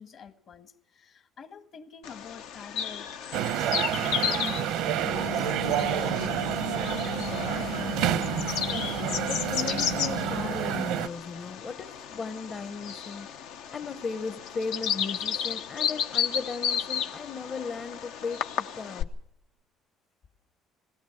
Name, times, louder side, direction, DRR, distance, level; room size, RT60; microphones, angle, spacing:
voice 1, 0.0-3.1 3.4-6.4, left 7 dB, 55° left, 9 dB, 1.8 m, -46 dB
Bird vocalization bird call bird song, 2.0-19.0, left 8 dB, 90° left, 1.0 m, -33 dB
sound 1, 3.3-11.1, right 11 dB, 85° right, 0.8 m, -29 dB
sound 2, 5.1-10.6, left 16 dB, 75° left, 1.4 m, -38 dB
voice 2, 8.7-13.3 13.7-19.1, left 5 dB, 35° left, 8 dB, 0.8 m, -36 dB
21.0 x 18.0 x 7.8 m, 0.77 s
cardioid pair, 105°, 0 cm